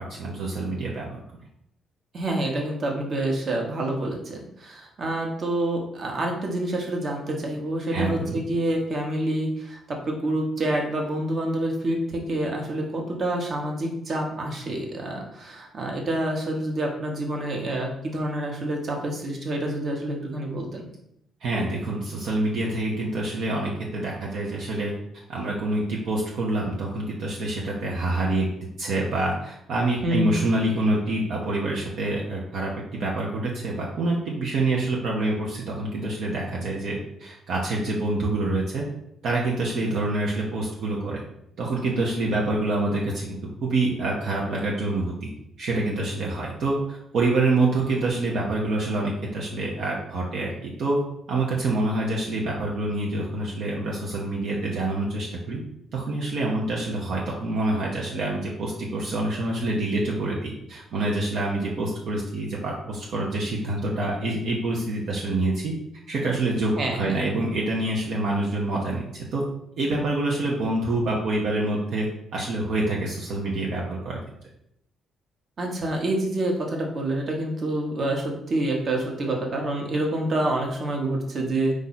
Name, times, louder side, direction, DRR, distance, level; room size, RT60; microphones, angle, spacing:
voice 1, 0.1-1.2 7.9-8.4 21.4-24.9 25.3-28.5 28.8-38.8 39.2-41.2 41.6-45.3 45.6-51.0 51.3-55.6 55.9-65.7 66.1-69.4 69.8-74.2, right 2 dB, 70° right, -3 dB, 0.8 m, -26 dB
voice 2, 2.1-20.9 30.0-30.3 66.8-67.2 75.6-81.7, right 1 dB, 50° right, 1 dB, 1.2 m, -27 dB
4.8 x 2.7 x 4.1 m, 0.77 s
cardioid pair, 90°, 0 cm